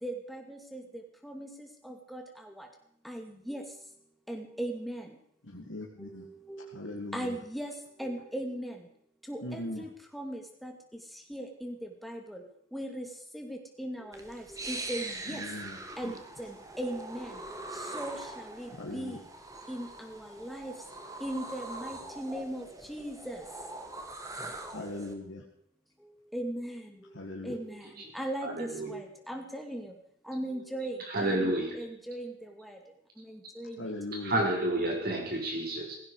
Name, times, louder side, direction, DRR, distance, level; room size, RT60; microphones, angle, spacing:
voice 1, 0.0-2.7 3.0-3.7 4.3-5.2 6.0-6.8 7.1-8.9 9.3-12.4 12.7-15.4 16.0-17.4 17.7-19.3 19.7-20.8 21.2-23.4 26.0-27.2 27.4-29.9 30.2-32.8 33.2-33.9, right 1 dB, ahead, 2 dB, 2.6 m, -39 dB
voice 2, 5.4-6.3 6.7-7.4 9.4-9.8 15.3-15.8 16.0-16.1 18.8-19.2 24.7-25.4 27.1-27.6 33.8-34.4, left 1 dB, 80° left, -1 dB, 2.1 m, -39 dB
sound 1, 14.1-25.1, right 2 dB, 20° right, 1.9 m, -42 dB
voice 3, 28.4-28.9 31.0-31.8 34.1-36.0, right 1 dB, 50° right, 0 dB, 4.8 m, -30 dB
17.0 x 16.5 x 4.9 m, 0.70 s
head